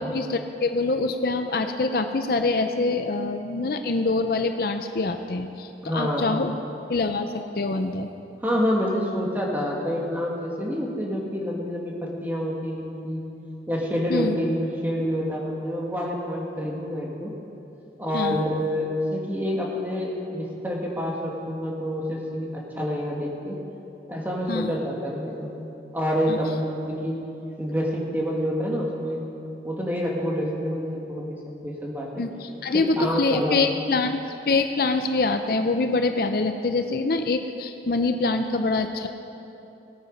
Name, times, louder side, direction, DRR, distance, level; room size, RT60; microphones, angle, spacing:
voice 1, 0.0-6.5 6.9-8.1 14.1-14.4 18.1-18.4 24.5-24.7 26.3-26.4 32.2-39.1, left 3 dB, 55° left, 7 dB, 0.5 m, -25 dB
voice 2, 5.8-6.6 8.4-13.2 13.7-17.3 18.0-23.6 24.1-25.5 25.9-27.2 27.6-29.2 29.6-31.4 31.6-32.2 32.9-33.6, equal, 10° right, -3 dB, 1.8 m, -27 dB
18.0 x 9.0 x 5.2 m, 3.0 s
head